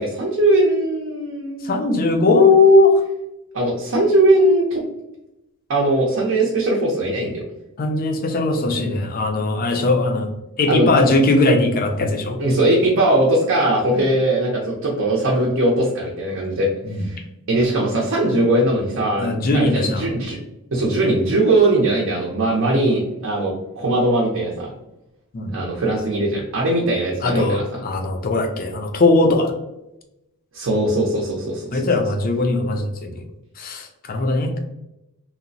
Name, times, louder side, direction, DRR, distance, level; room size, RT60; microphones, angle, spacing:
voice 1, 0.0-1.9 3.5-4.8 5.7-7.4 10.7-10.9 12.4-16.7 17.0-17.2 17.5-20.4 20.7-24.7 25.5-27.8 30.5-31.9, right 1 dB, 60° right, -3 dB, 0.5 m, -20 dB
voice 2, 1.6-2.9 7.8-10.3 10.6-12.4 16.8-17.1 19.2-20.1 25.3-25.5 27.2-29.5 31.7-33.2 33.6-34.5, left 2 dB, 40° left, 4 dB, 0.4 m, -18 dB
2.8 x 2.0 x 2.6 m, 0.90 s
head